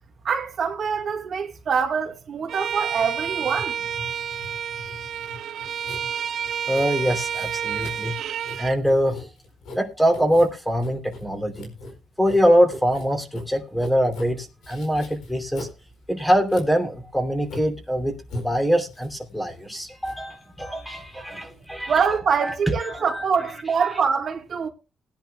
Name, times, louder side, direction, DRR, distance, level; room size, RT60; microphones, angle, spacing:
voice 1, 0.2-3.8 21.9-24.7, right 6 dB, 55° right, 2.4 m, -24 dB
Writing, 2.5-21.7, left 1 dB, 85° left, 4.4 m, -42 dB
Bowed string instrument, 2.5-8.8, right 8 dB, 70° right, 0.6 m, -30 dB
voice 2, 6.7-8.1 8.6-9.3 9.7-11.7 12.2-15.7 16.1-21.9 22.4-22.5 22.8-23.2, equal, 5° left, 3.1 m, -23 dB
20.0 x 10.5 x 2.3 m
cardioid pair, 90°, 0 cm